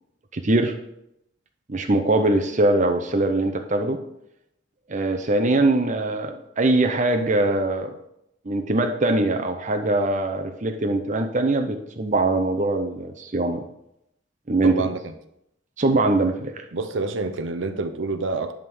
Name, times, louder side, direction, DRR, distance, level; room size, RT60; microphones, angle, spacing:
voice 1, 0.3-0.7 1.7-4.0 4.9-7.9 8.5-13.6 14.5-14.8 15.8-16.5, right 2 dB, 40° right, 6 dB, 0.7 m, -22 dB
voice 2, 14.6-15.1 16.7-18.5, right 3 dB, 85° right, 9 dB, 0.7 m, -27 dB
11.0 x 3.7 x 6.2 m, 0.80 s
head